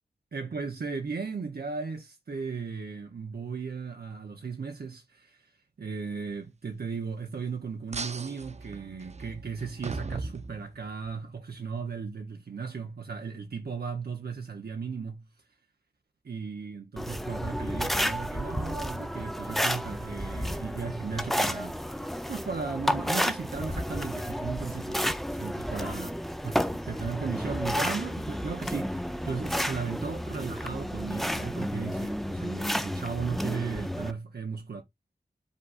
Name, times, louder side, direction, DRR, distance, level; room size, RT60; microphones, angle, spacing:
voice 1, 0.3-5.5 5.8-15.2 16.2-26.1 26.4-34.8, right 5 dB, 70° right, 0.9 m, -36 dB
sound 1, 7.9-11.1, right 3 dB, 40° right, 0.6 m, -38 dB
sound 2, 17.0-34.1, equal, ahead, 0.6 m, -31 dB
5.4 x 3.6 x 2.5 m
cardioid pair, 50°, 17 cm